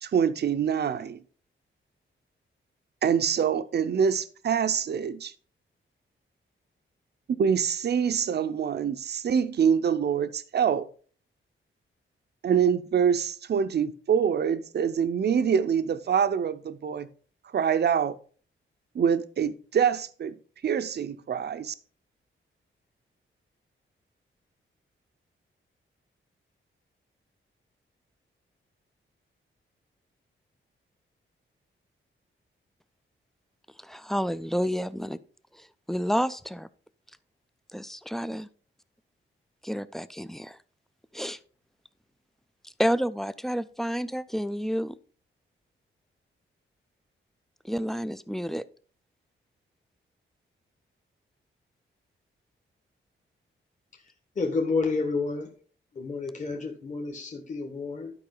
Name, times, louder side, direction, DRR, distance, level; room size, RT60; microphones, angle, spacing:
voice 1, 0.0-1.2 3.0-5.3 7.3-10.9 12.4-17.1 17.5-18.2 18.9-20.4 20.6-21.7, right 7 dB, 50° right, 0.6 m, -25 dB
voice 2, 33.8-35.2 35.6-36.7 37.7-38.5 39.6-40.6 41.1-41.4 42.6-45.0 47.6-48.6, equal, ahead, 0.3 m, -30 dB
voice 3, 54.4-55.5 55.9-58.1, left 4 dB, 35° left, 1.4 m, -30 dB
11.5 x 5.1 x 3.9 m
wide cardioid pair, 130°, 21 cm